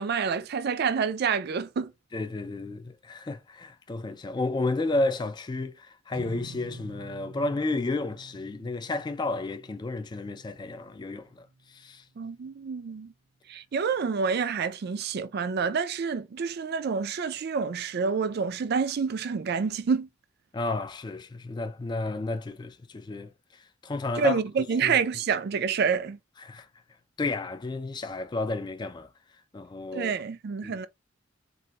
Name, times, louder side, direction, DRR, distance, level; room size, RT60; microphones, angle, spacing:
voice 1, 0.0-1.9 12.2-13.1 13.5-20.1 24.2-26.2 29.9-30.9, right 6 dB, 55° right, 0.4 m, -28 dB
voice 2, 2.1-11.5 11.7-12.0 20.5-23.3 23.8-24.4 24.8-25.0 26.4-26.7 27.2-29.1 29.5-30.1 30.6-30.8, left 2 dB, 20° left, 0.3 m, -32 dB
sound 1, 6.1-12.5, right 2 dB, 75° right, 0.9 m, -48 dB
3.3 x 2.5 x 2.8 m
head